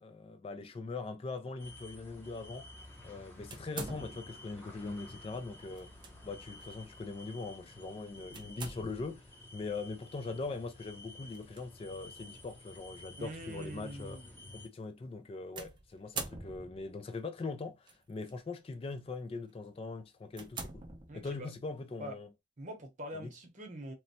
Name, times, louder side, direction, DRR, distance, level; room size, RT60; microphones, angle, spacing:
voice 1, 0.0-2.7 3.0-5.9 6.2-14.2 14.5-20.9 21.1-22.3 23.1-23.3, left 3 dB, 30° left, 0.3 m, -41 dB
sound 1, 1.6-14.7, left 1 dB, 10° left, 0.7 m, -52 dB
sound 2, 3.5-4.5 5.8-6.1 6.6-6.7 8.3-9.2 11.3-11.6 12.4-12.5 15.6-17.0 17.9-18.3 18.9-19.1 19.6-19.7 20.3-21.5, right 4 dB, 25° right, 0.5 m, -44 dB
voice 2, 13.2-14.3 21.1-21.5 22.0-22.2 22.6-23.9, equal, 45° right, 0.8 m, -44 dB
3.0 x 2.1 x 2.7 m
head